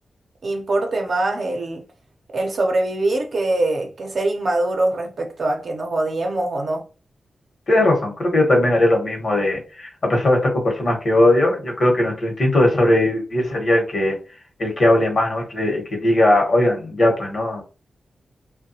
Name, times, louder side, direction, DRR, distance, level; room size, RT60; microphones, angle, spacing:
voice 1, 0.4-1.8 2.3-6.8, right 2 dB, 55° right, 0.7 m, -23 dB
voice 2, 7.7-14.2 14.6-17.6, left 1 dB, 55° left, 1.0 m, -19 dB
3.2 x 2.2 x 2.7 m
wide cardioid pair, 135°, 0 cm